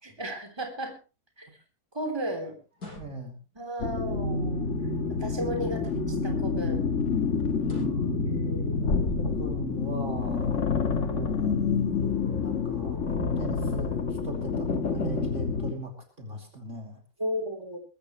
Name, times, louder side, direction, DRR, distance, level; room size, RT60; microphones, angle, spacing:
voice 1, 0.0-0.9 1.4-1.5 1.9-2.6 3.5-4.7 5.2-5.8 6.2-6.8 8.2-8.8 17.2-17.8, right 1 dB, 15° right, 4 dB, 3.4 m, -34 dB
sound 1, 2.7-3.5 5.7-6.4 7.6-8.1, left 2 dB, 70° left, 6.9 m, -46 dB
voice 2, 3.0-3.3 5.5-5.9 7.6-8.3 9.2-10.6 11.0-11.6 12.3-13.0 13.4-17.0, right 2 dB, 50° right, 3 dB, 3.2 m, -38 dB
sound 2, 3.8-15.7, left 5 dB, 50° left, 1.8 m, -28 dB
22.0 x 13.5 x 3.1 m, 0.31 s
omnidirectional pair, 1.7 m